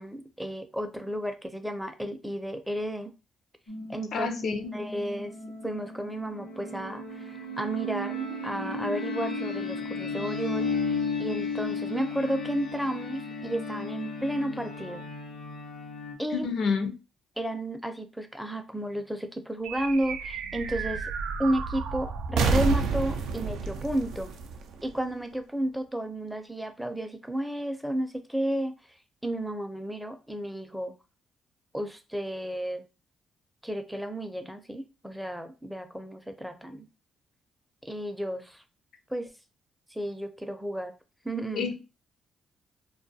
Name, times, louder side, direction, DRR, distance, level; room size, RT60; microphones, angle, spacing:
voice 1, 0.0-3.1 3.9-4.3 4.7-5.3 5.6-15.1 16.2-16.5 17.4-21.1 21.4-24.3 24.8-28.7 29.2-30.9 31.7-32.8 33.6-36.9 37.8-38.6 39.1-39.3 39.9-40.9 41.2-41.7, right 1 dB, ahead, 7 dB, 0.4 m, -32 dB
sound 1, 3.7-16.1, left 3 dB, 90° left, 0.9 m, -34 dB
voice 2, 4.1-4.7 16.3-16.9 41.5-41.7, left 5 dB, 65° left, 7 dB, 0.5 m, -28 dB
sound 2, 19.6-25.3, right 4 dB, 85° right, 0.3 m, -30 dB
2.3 x 2.2 x 2.7 m, 0.29 s
cardioid pair, 90°, 0 cm